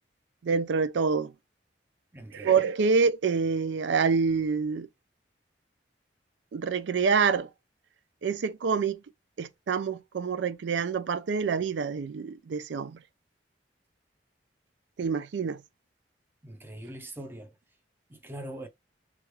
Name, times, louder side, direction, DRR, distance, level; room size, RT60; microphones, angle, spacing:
voice 1, 0.4-1.3 2.3-4.9 6.5-7.5 8.2-9.0 9.4-13.0 15.0-15.6, right 5 dB, 75° right, 0.4 m, -26 dB
voice 2, 2.1-2.5 16.4-17.5 18.1-18.7, right 1 dB, 10° right, 0.5 m, -42 dB
3.0 x 2.4 x 3.0 m
head